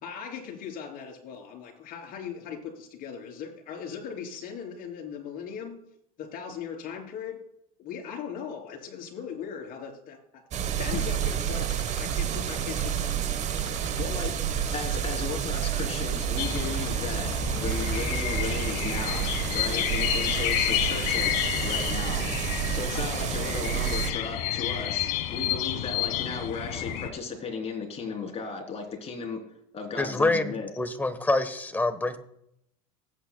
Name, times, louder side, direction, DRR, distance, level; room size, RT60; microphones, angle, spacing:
voice 1, 0.0-5.8 6.2-7.4 7.8-10.4 10.8-14.0, left 7 dB, 50° left, 2 dB, 3.3 m, -39 dB
sound 1, 10.5-24.1, right 9 dB, 35° right, 1.0 m, -29 dB
Typing, 11.1-13.1 13.4-14.3 14.6-16.2 16.5-16.9 17.2-20.1 20.4-20.7, left 14 dB, 85° left, 1.4 m, -46 dB
voice 2, 14.0-14.3 14.7-22.3 22.7-29.4 29.7-30.7, left 4 dB, 30° left, 2 dB, 3.2 m, -35 dB
sound 2, 16.4-27.1, left 12 dB, 65° left, 1.4 m, -30 dB
voice 3, 30.0-32.2, left 2 dB, 10° left, 9 dB, 1.1 m, -26 dB
19.0 x 8.7 x 2.3 m, 0.76 s
supercardioid pair, 105°, 19 cm